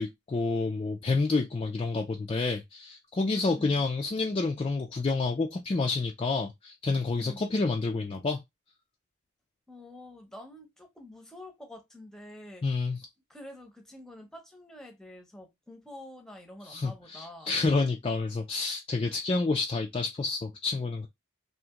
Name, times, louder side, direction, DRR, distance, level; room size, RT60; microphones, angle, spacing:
voice 1, 0.0-8.4 12.6-13.0 16.6-21.1, left 3 dB, 25° left, 0.3 m, -29 dB
voice 2, 3.4-3.8 7.2-7.6 9.7-12.6 13.3-17.5, left 1 dB, 5° left, 0.7 m, -47 dB
2.8 x 2.5 x 3.6 m
head